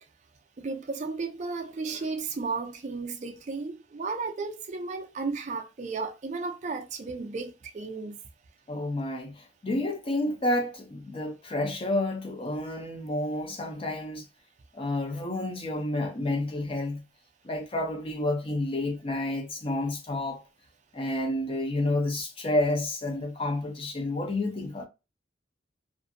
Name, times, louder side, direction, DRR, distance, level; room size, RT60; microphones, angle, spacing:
voice 1, 0.6-8.2, right 4 dB, 40° right, 0.4 m, -34 dB
voice 2, 8.7-14.2 14.7-17.0 17.4-20.4 20.9-24.9, left 1 dB, 30° left, 0.5 m, -30 dB
2.6 x 2.5 x 2.5 m
head